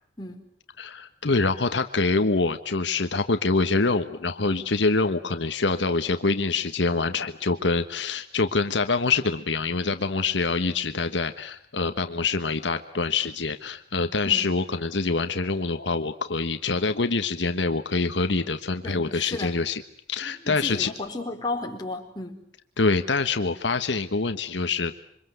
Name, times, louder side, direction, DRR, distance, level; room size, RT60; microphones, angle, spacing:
voice 1, 0.8-19.8 20.1-20.9 22.8-24.9, left 3 dB, 80° left, 8 dB, 1.4 m, -25 dB
voice 2, 18.8-19.6 20.2-22.4, left 2 dB, 25° left, 1 dB, 4.6 m, -34 dB
27.5 x 24.5 x 8.1 m, 0.68 s
head